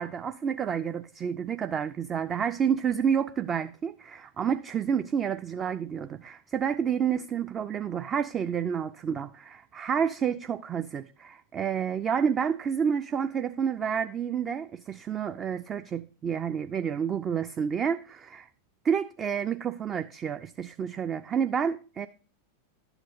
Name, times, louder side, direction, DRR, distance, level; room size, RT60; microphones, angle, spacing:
voice 1, 0.0-18.5 18.8-22.1, right 7 dB, 25° right, 0.3 m, -29 dB
11.0 x 7.9 x 2.6 m
figure-of-eight pair, 90°, 0 cm